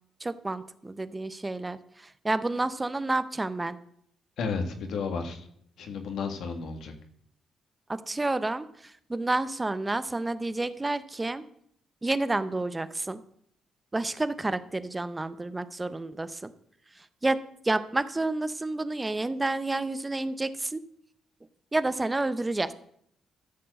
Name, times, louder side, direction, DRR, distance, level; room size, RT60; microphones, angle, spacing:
voice 1, 0.2-1.8 2.2-3.8 7.9-8.7 9.1-11.4 12.0-13.2 13.9-16.4 17.2-17.4 17.6-20.8 21.7-22.7, right 2 dB, 20° right, 13 dB, 0.7 m, -29 dB
voice 2, 4.4-5.5 5.8-6.9, left 5 dB, 70° left, 6 dB, 1.7 m, -32 dB
13.0 x 4.5 x 7.6 m, 0.68 s
cardioid pair, 90°, 0 cm